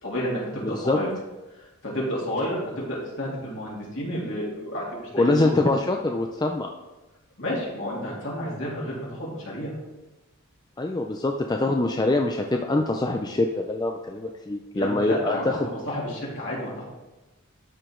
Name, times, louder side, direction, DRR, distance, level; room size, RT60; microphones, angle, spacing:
voice 1, 0.0-1.1 1.8-5.3 7.4-9.7 14.7-15.6 15.8-16.8, equal, 60° left, -5 dB, 3.1 m, -30 dB
voice 2, 0.6-1.0 5.1-6.7 10.8-15.6, left 2 dB, 20° left, 3 dB, 0.4 m, -24 dB
12.0 x 4.9 x 3.8 m, 1.1 s
head